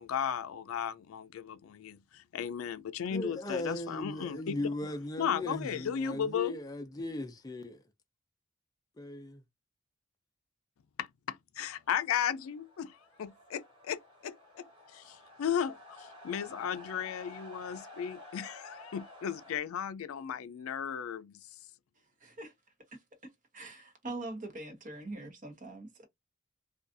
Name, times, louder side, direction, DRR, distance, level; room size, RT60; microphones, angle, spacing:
voice 1, 0.0-4.6 5.2-6.6 11.0-14.6 14.9-21.3, left 8 dB, 85° left, 0.4 m, -35 dB
voice 2, 3.1-7.8 9.0-9.4, left 2 dB, 20° left, 0.4 m, -37 dB
sound 1, 12.0-19.6, left 1 dB, 25° right, 1.3 m, -52 dB
voice 3, 22.2-22.5 23.5-26.0, right 2 dB, 40° right, 0.8 m, -42 dB
2.5 x 2.3 x 2.5 m
head